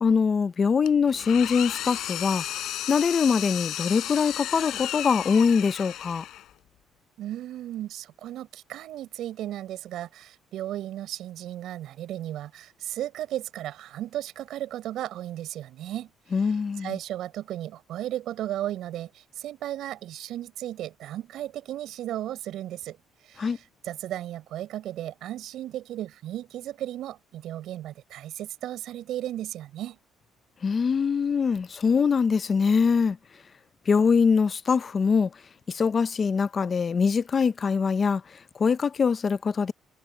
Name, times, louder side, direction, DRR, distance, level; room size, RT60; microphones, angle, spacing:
voice 1, 0.0-2.4 2.9-6.2 16.3-17.0 23.4-23.6 30.6-33.2 33.9-35.3 35.7-39.7, left 5 dB, 25° left, 0.5 m, -23 dB
Engine, 0.9-6.6, left 13 dB, 65° left, 4.0 m, -34 dB
voice 2, 7.2-16.1 16.4-23.0 23.2-30.0, right 13 dB, 65° right, 6.1 m, -35 dB
cardioid pair, 170°, 0 cm